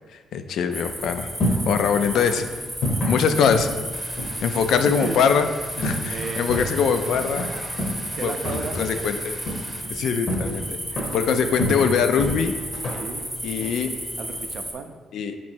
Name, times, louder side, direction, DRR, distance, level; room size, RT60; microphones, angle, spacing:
voice 1, 0.1-1.3 1.7-2.5 3.0-3.7 4.4-5.5 5.8-7.5 8.2-9.4 9.9-12.6 13.4-14.0 15.1-15.4, left 6 dB, 75° left, 9 dB, 0.3 m, -23 dB
sound 1, 0.7-14.7, right 1 dB, 5° right, 0.7 m, -33 dB
sound 2, 1.0-14.4, equal, 60° left, 0.8 m, -30 dB
sound 3, 3.9-9.8, right 2 dB, 25° right, 0.8 m, -43 dB
voice 2, 6.1-6.7 8.1-8.8 12.8-13.3 14.2-15.0, right 5 dB, 55° right, 6 dB, 0.4 m, -33 dB
3.6 x 3.0 x 4.3 m, 1.4 s
cardioid pair, 90°, 0 cm